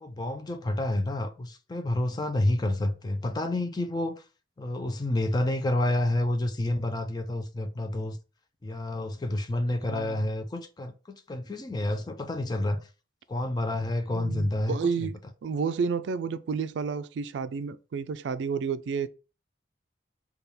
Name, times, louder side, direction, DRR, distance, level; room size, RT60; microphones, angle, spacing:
voice 1, 0.0-4.2 4.6-8.2 8.6-12.8 13.3-15.1, left 1 dB, 20° left, 0.3 m, -29 dB
voice 2, 9.9-10.3 14.1-19.1, right 5 dB, 70° right, 0.3 m, -31 dB
3.4 x 2.3 x 4.2 m
head